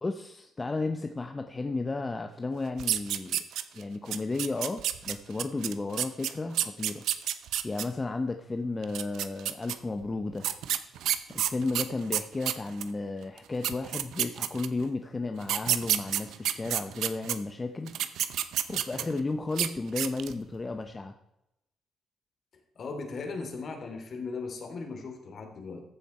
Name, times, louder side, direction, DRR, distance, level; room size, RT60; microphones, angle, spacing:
voice 1, 0.0-3.4 3.7-7.0 7.6-10.5 11.3-18.0 18.7-21.1, left 3 dB, 25° left, 6 dB, 0.8 m, -33 dB
sound 1, 2.8-3.8 4.1-7.8 8.8-9.7 10.4-12.9 13.4-13.5 13.6-14.8 15.4-17.3 17.9-19.2 19.5-19.7 20.0-20.4, right 11 dB, 80° right, 0.7 m, -29 dB
voice 2, 22.8-25.8, left 4 dB, 55° left, 4 dB, 2.7 m, -38 dB
15.0 x 7.1 x 4.3 m, 0.85 s
cardioid pair, 90°, 0 cm